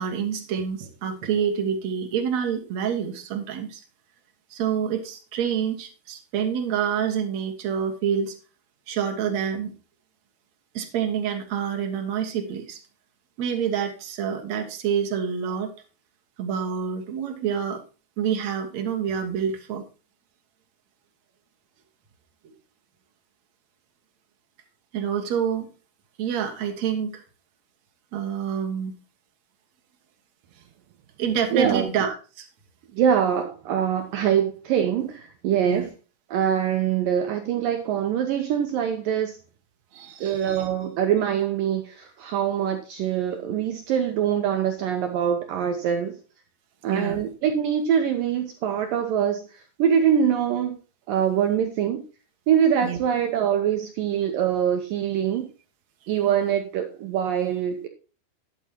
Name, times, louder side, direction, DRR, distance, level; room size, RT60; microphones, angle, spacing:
voice 1, 0.0-3.8 4.5-8.3 8.9-9.8 10.7-12.8 13.4-15.7 16.4-17.8 18.2-19.8 24.9-25.7 26.2-27.2 28.1-28.9 31.2-32.5 35.6-35.9 39.9-40.7 46.9-47.2 52.8-53.0, right 8 dB, 65° right, 4 dB, 1.8 m, -27 dB
voice 2, 31.5-31.9 32.9-35.9 36.3-39.4 40.2-46.2 46.8-50.8 51.1-52.1 52.5-55.5 56.1-57.9, right 8 dB, 90° right, 6 dB, 1.9 m, -24 dB
12.0 x 9.0 x 2.9 m, 0.34 s
omnidirectional pair, 5.3 m